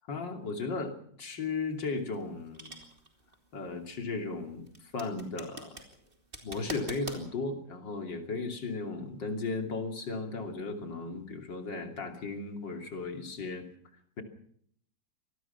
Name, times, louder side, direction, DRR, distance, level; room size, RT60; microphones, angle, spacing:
voice 1, 0.1-2.7 3.5-4.7 4.9-5.7 6.4-13.7, left 3 dB, 70° left, 4 dB, 3.5 m, -36 dB
sound 1, 1.6-7.2, right 2 dB, 30° right, 3.4 m, -45 dB
25.0 x 19.0 x 5.9 m, 0.64 s
omnidirectional pair, 2.1 m